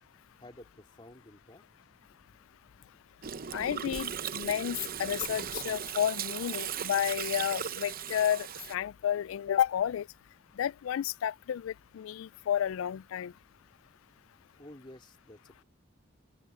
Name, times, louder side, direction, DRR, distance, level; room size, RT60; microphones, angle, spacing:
voice 1, 0.4-1.6 14.6-15.6, left 1 dB, 25° left, 3.2 m, -52 dB
Gurgling, 3.2-8.7, right 8 dB, 45° right, 0.8 m, -37 dB
voice 2, 3.5-10.1 10.6-13.3, left 10 dB, 85° left, 0.3 m, -31 dB
open air
head